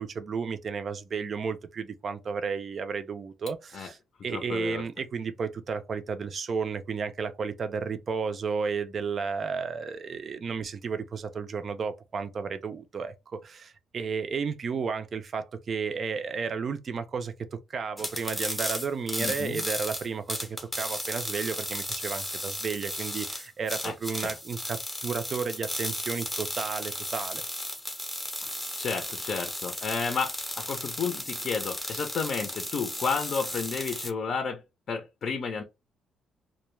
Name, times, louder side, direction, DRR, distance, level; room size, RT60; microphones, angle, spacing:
voice 1, 0.0-4.0 4.2-27.4, right 5 dB, 45° right, 0.4 m, -33 dB
voice 2, 4.3-4.9 19.2-19.6 23.8-24.4 28.4-34.6 34.9-35.6, left 5 dB, 50° left, 0.5 m, -32 dB
sound 1, 18.0-34.1, left 1 dB, 5° left, 0.7 m, -35 dB
2.2 x 2.1 x 3.1 m
cardioid pair, 110°, 0 cm